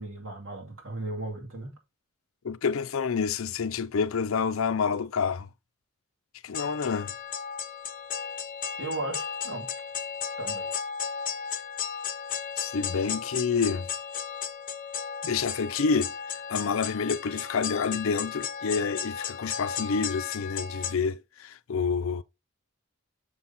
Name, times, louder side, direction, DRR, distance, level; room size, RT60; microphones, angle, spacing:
voice 1, 0.0-1.8 8.8-9.7 10.4-10.8, right 2 dB, 75° right, 2.3 m, -36 dB
voice 2, 2.4-5.5 6.4-7.1 12.6-13.9 15.2-22.2, left 5 dB, 80° left, 0.5 m, -28 dB
sound 1, 6.5-20.9, left 7 dB, 40° left, 0.8 m, -35 dB
6.7 x 5.6 x 4.0 m
head